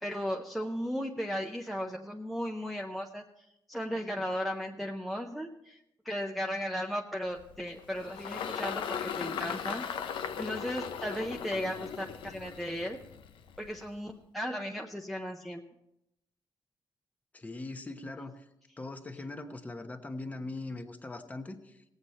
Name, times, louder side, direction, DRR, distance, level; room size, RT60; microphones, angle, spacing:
voice 1, 0.0-3.2 3.7-5.8 6.0-9.9 10.4-13.0 13.6-15.6, equal, ahead, 1 dB, 0.6 m, -36 dB
Engine, 7.3-13.9, left 7 dB, 80° left, 0.7 m, -38 dB
voice 2, 17.3-18.5 18.8-21.8, left 2 dB, 20° left, 6 dB, 1.0 m, -41 dB
18.5 x 8.1 x 4.3 m, 0.85 s
wide cardioid pair, 145°, 9 cm